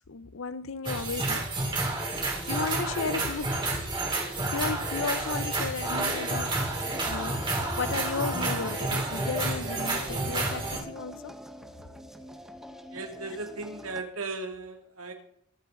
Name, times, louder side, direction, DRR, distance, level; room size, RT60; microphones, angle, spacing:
voice 1, 0.1-1.5 2.5-3.9 4.5-6.5 7.1-11.4, left 5 dB, 65° left, 0.7 m, -34 dB
sound 1, 0.9-10.8, right 2 dB, 25° right, 3.3 m, -30 dB
sound 2, 6.7-14.0, equal, ahead, 1.1 m, -44 dB
voice 2, 12.9-15.1, right 3 dB, 80° right, 2.6 m, -36 dB
23.0 x 8.0 x 3.9 m
head